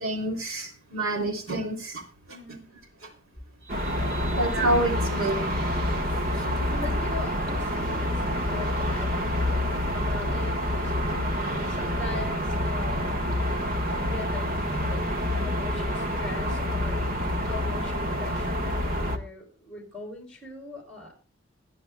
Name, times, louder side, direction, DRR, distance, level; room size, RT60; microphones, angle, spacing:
voice 1, 0.0-2.0 3.7-5.5, right 1 dB, 90° right, 3 dB, 3.2 m, -28 dB
voice 2, 2.3-2.7 4.1-4.4 6.7-13.3 13.9-21.1, left 2 dB, 5° left, 1 dB, 7.0 m, -41 dB
sound 1, 3.7-19.2, left 1 dB, 45° right, 1.6 m, -27 dB
27.0 x 10.5 x 2.3 m, 0.35 s
head